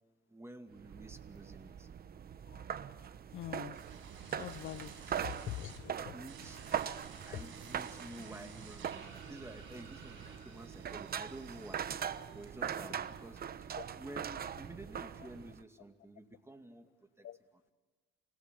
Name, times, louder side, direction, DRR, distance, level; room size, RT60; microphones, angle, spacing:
voice 1, 0.3-1.9 5.1-5.2 6.1-6.6 7.3-11.9 12.3-16.9 17.2-17.6, right 1 dB, 15° right, 7 dB, 2.3 m, -51 dB
sound 1, 0.7-15.6, right 8 dB, 50° right, 1.0 m, -42 dB
voice 2, 3.3-3.8 4.4-4.9 5.2-6.1 13.8-13.9 17.2-17.4, left 13 dB, 75° left, 17 dB, 0.7 m, -43 dB
sound 2, 3.7-5.8 6.3-12.8 13.1-13.7, right 6 dB, 80° right, 5.5 m, -53 dB
28.0 x 17.0 x 8.3 m, 1.4 s
cardioid pair, 90°, 20 cm